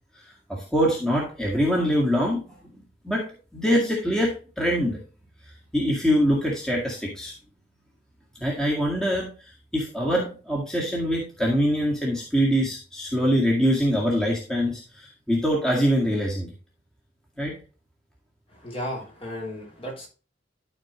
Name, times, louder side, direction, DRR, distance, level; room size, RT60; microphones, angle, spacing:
voice 1, 0.5-3.2 3.5-5.0 5.7-7.3 8.4-9.3 9.7-16.5 17.4-17.6, equal, 5° left, -3 dB, 2.0 m, -24 dB
voice 2, 18.5-20.1, equal, 30° left, -2 dB, 3.1 m, -34 dB
13.0 x 4.5 x 3.1 m, 0.34 s
head